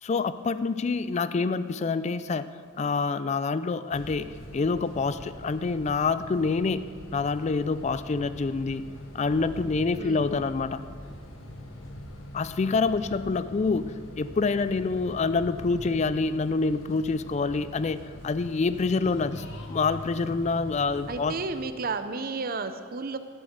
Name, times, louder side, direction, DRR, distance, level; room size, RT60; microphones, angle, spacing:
voice 1, 0.0-2.5 2.8-4.3 4.5-6.9 7.1-8.8 9.1-10.8 12.3-21.3, left 4 dB, 35° left, 14 dB, 0.4 m, -27 dB
sound 1, 3.9-21.6, left 1 dB, 80° left, 1.4 m, -43 dB
voice 2, 21.1-23.2, right 4 dB, 45° right, 11 dB, 0.6 m, -32 dB
11.0 x 7.6 x 8.0 m, 2.2 s
head